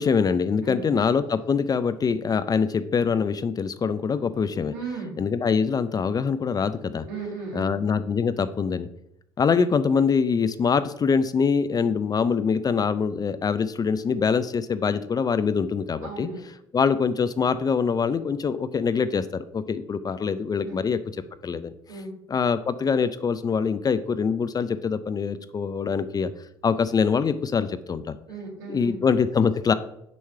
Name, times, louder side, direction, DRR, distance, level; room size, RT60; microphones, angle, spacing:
voice 1, 0.0-4.7 5.2-7.1 7.5-8.9 9.4-16.3 16.7-21.0 21.4-21.7 22.3-26.3 26.6-28.1 28.7-29.7, left 6 dB, 30° left, 12 dB, 0.4 m, -24 dB
voice 2, 4.7-5.2 7.1-7.7 16.0-16.4 20.6-20.8 21.9-22.1 28.3-29.0, right 3 dB, 70° right, -2 dB, 2.1 m, -35 dB
6.9 x 3.1 x 5.6 m, 0.78 s
hypercardioid pair, 60°, 13 cm